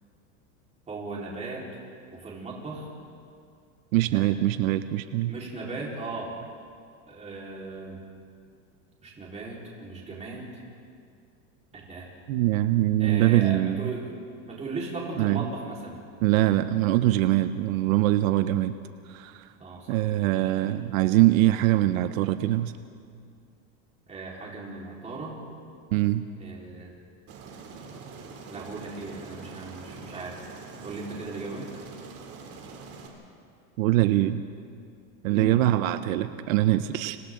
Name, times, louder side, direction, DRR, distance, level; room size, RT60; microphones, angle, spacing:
voice 1, 0.9-1.6 2.1-2.9 4.0-4.2 5.3-6.3 7.1-8.0 9.0-10.4 11.7-12.1 13.0-14.2 14.4-16.0 19.6-20.5 24.1-25.3 26.4-26.9 28.5-30.4 30.8-31.7 35.3-35.6, right 3 dB, 15° right, -4 dB, 4.4 m, -37 dB
voice 2, 3.9-5.3 12.3-13.9 15.2-15.5 16.2-18.8 19.1-19.5 19.9-22.7 25.9-26.3 33.8-34.4 35.2-37.2, right 15 dB, 80° right, 11 dB, 0.9 m, -23 dB
Aircraft, 27.3-33.1, right 4 dB, 35° right, 3.1 m, -44 dB
29.5 x 26.0 x 3.9 m, 2.3 s
supercardioid pair, 155°, 40 cm